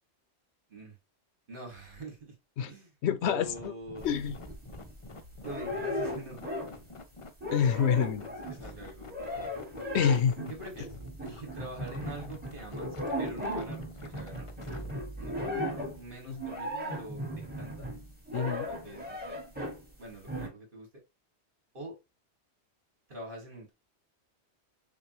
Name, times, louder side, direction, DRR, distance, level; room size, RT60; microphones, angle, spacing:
voice 1, 1.5-2.4 2.7-2.9 3.2-4.2 5.4-6.4 8.2-9.5 10.1-10.9 11.2-14.5 14.8-14.9 15.2-17.9 18.7-19.4 20.0-20.9 21.7-22.0 23.1-23.7, right 2 dB, 50° right, 2.1 m, -45 dB
voice 2, 3.0-3.5 4.0-4.3 7.5-8.2 9.9-10.3 18.3-18.7, left 7 dB, 80° left, 0.9 m, -26 dB
sound 1, 3.3-14.9, left 3 dB, 35° left, 0.6 m, -49 dB
sound 2, 4.0-5.0 5.4-6.9 7.2-19.8 20.3-20.5, equal, 10° right, 1.6 m, -37 dB
6.7 x 2.5 x 3.0 m
omnidirectional pair, 1.1 m